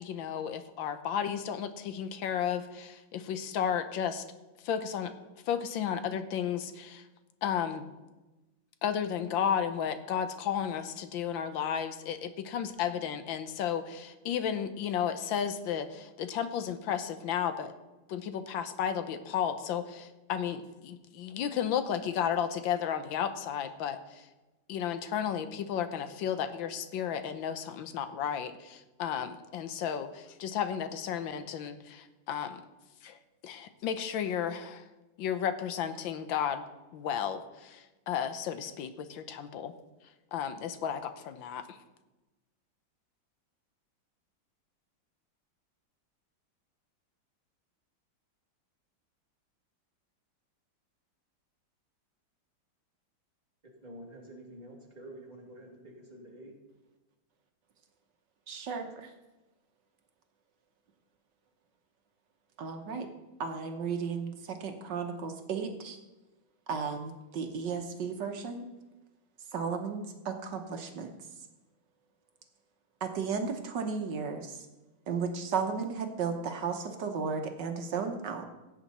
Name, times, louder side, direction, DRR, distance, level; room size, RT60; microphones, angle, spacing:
voice 1, 0.0-4.2 4.6-5.1 5.5-7.1 7.4-7.8 8.8-17.7 18.1-24.3 24.7-32.6 33.0-33.2 33.4-34.9 35.2-36.7 36.9-39.7 40.3-41.8, left 8 dB, 85° left, 10 dB, 1.5 m, -33 dB
voice 2, 53.6-56.5, right 1 dB, 20° right, -2 dB, 2.6 m, -48 dB
voice 3, 58.5-59.1 62.6-63.1 63.4-66.0 66.7-68.7 69.5-71.1 73.0-74.6 75.1-78.4, right 5 dB, 65° right, 5 dB, 1.6 m, -34 dB
16.5 x 8.2 x 4.2 m, 1.1 s
omnidirectional pair, 2.1 m